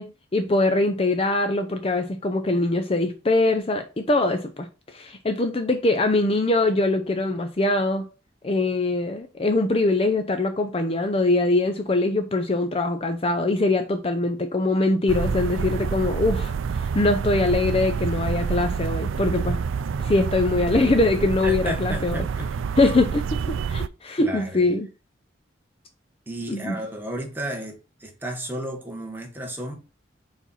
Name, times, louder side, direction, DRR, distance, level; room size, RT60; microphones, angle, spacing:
voice 1, 0.0-8.1 8.4-19.6 20.0-22.2 22.8-23.2 23.7-24.9 26.5-26.8, left 2 dB, 30° left, 0.5 m, -23 dB
sound 1, 15.1-23.9, right 6 dB, 85° right, 0.4 m, -27 dB
voice 2, 21.4-22.7 24.2-24.7 26.3-29.7, equal, 10° right, 1.3 m, -33 dB
4.8 x 4.3 x 5.5 m
head